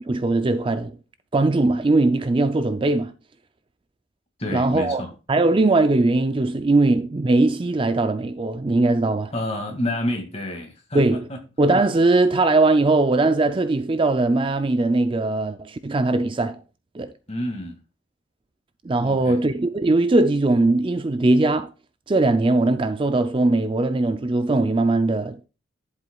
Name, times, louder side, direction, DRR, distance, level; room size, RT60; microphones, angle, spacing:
voice 1, 0.1-1.0 1.3-3.1 4.5-5.0 5.3-9.3 10.9-11.2 11.6-16.6 16.9-17.1 18.8-21.7 22.1-25.5, right 2 dB, 25° right, 0.4 m, -20 dB
voice 2, 4.4-5.1 9.3-11.4 17.3-17.8 19.0-19.4, left 1 dB, 30° left, 2.0 m, -29 dB
10.5 x 8.0 x 2.3 m
head